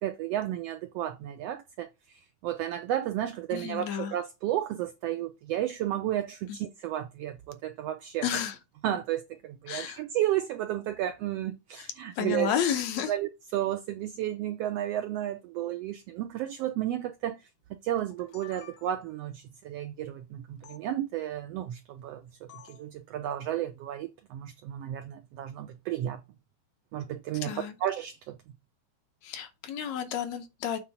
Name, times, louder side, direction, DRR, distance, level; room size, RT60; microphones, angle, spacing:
voice 1, 0.0-8.2 8.8-12.5 13.1-17.5 17.8-22.2 22.6-26.2 26.9-27.5 27.8-28.2, right 12 dB, 90° right, 1.4 m, -32 dB
voice 2, 3.5-4.1 6.5-6.6 8.2-8.6 9.7-10.0 11.8-11.9 12.2-13.1 27.4-27.8 29.2-30.8, left 8 dB, 70° left, 2.0 m, -31 dB
sound 1, 18.0-19.2 20.6-20.8 22.5-22.9, left 8 dB, 85° left, 2.3 m, -52 dB
7.3 x 3.7 x 5.6 m
omnidirectional pair, 3.4 m